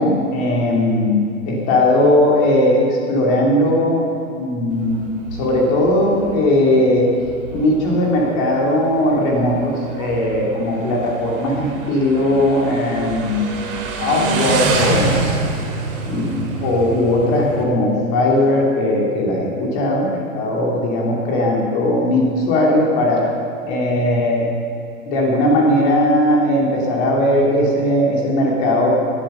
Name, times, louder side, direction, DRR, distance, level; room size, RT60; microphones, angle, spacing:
voice 1, 0.0-4.1 4.4-7.1 7.5-13.6 14.0-15.3 16.0-23.2 23.6-24.5 25.0-28.9, left 1 dB, 25° left, -2 dB, 2.7 m, -18 dB
Motorcycle, 4.7-17.6, right 3 dB, 40° right, 2.4 m, -27 dB
16.0 x 12.0 x 5.5 m, 2.5 s
hypercardioid pair, 165°, 42 cm